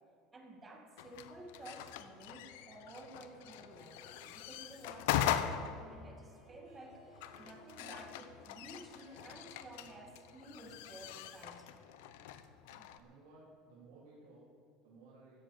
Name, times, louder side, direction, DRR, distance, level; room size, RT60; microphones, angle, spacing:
voice 1, 0.3-11.9, right 2 dB, 15° right, 2 dB, 2.2 m, -53 dB
sound 1, 1.0-13.0, left 10 dB, 85° left, 0.8 m, -41 dB
Harp, 5.3-11.1, right 2 dB, 40° right, 4.3 m, -63 dB
voice 2, 12.7-15.4, right 2 dB, 85° right, -6 dB, 3.6 m, -59 dB
15.0 x 7.7 x 8.7 m, 2.6 s
supercardioid pair, 135°, 0 cm